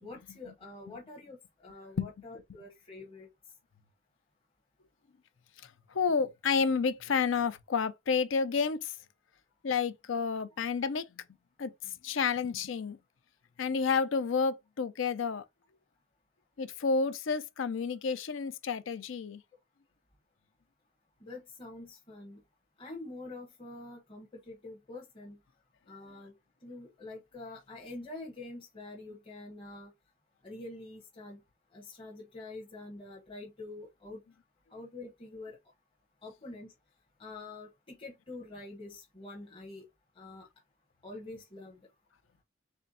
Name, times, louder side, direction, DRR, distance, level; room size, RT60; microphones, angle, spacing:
voice 1, 0.0-3.3 21.2-22.4 22.8-25.4 25.9-26.3 26.6-29.9 30.4-31.4 31.7-34.2 34.7-35.6 36.2-36.7 37.2-39.8 40.1-40.5 41.0-41.8, left 2 dB, 30° left, 0.9 m, -46 dB
voice 2, 5.9-9.0 9.6-11.2 11.6-13.0 13.6-15.4 16.6-19.4, left 5 dB, 80° left, 0.5 m, -30 dB
4.3 x 3.4 x 2.6 m
head